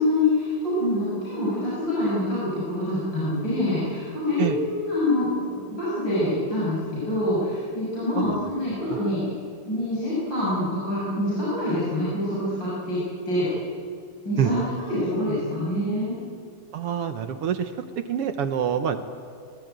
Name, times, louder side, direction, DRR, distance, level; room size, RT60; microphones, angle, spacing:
voice 1, 0.0-9.3 9.7-13.5 14.3-16.2, left 1 dB, 30° left, -8 dB, 7.4 m, -26 dB
voice 2, 16.7-19.0, right 9 dB, 70° right, 9 dB, 1.4 m, -26 dB
25.0 x 20.0 x 9.2 m, 2.3 s
omnidirectional pair, 3.8 m